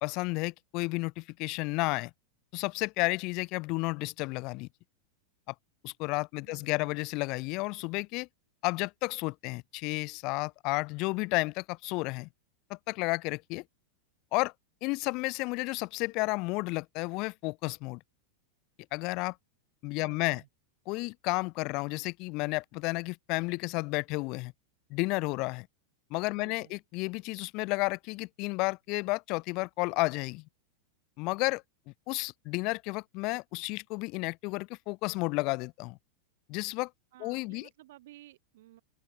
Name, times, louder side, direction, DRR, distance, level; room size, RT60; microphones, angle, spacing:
voice 1, 0.0-2.1 2.5-4.7 5.5-5.6 5.8-8.3 8.6-12.3 12.7-13.6 14.3-14.5 14.8-18.0 18.9-19.4 19.8-20.4 20.9-24.5 24.9-25.7 26.1-30.4 31.2-31.6 32.1-36.0 36.5-36.9 37.2-37.7, left 26 dB, 40° left, 0.7 m, -32 dB
voice 2, 6.5-6.9 20.0-20.5 26.4-26.8 37.1-38.8, right 16 dB, 55° right, 1.3 m, -54 dB
open air
figure-of-eight pair, 90°, 0 cm